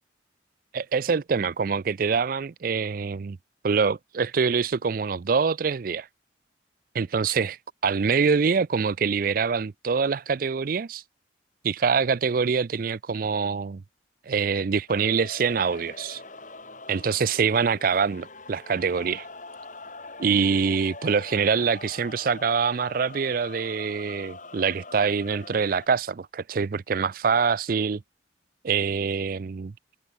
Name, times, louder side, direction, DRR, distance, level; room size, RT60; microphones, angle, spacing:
voice 1, 0.7-3.4 3.6-6.1 6.9-7.6 7.8-11.0 11.6-13.8 14.3-16.2 16.9-19.3 20.2-28.0 28.6-29.7, right 5 dB, 50° right, 0.4 m, -25 dB
sound 1, 14.9-25.9, left 3 dB, 40° left, 7.1 m, -43 dB
head